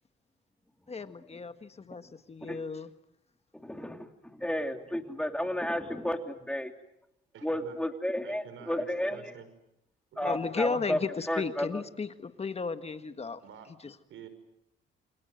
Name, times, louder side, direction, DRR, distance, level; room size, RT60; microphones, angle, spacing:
voice 1, 0.9-2.9 10.2-13.4 13.8-14.0, left 4 dB, 30° left, 10 dB, 1.6 m, -34 dB
voice 2, 3.5-6.7 7.4-9.3 10.2-11.0 11.3-11.8, left 1 dB, 5° left, 5 dB, 3.0 m, -32 dB
voice 3, 7.3-7.8 8.2-9.5 10.1-10.6 11.5-11.8 13.4-13.7 14.1-14.3, right 8 dB, 80° right, 11 dB, 5.3 m, -49 dB
29.0 x 25.5 x 7.9 m, 0.80 s
cardioid pair, 90°, 20 cm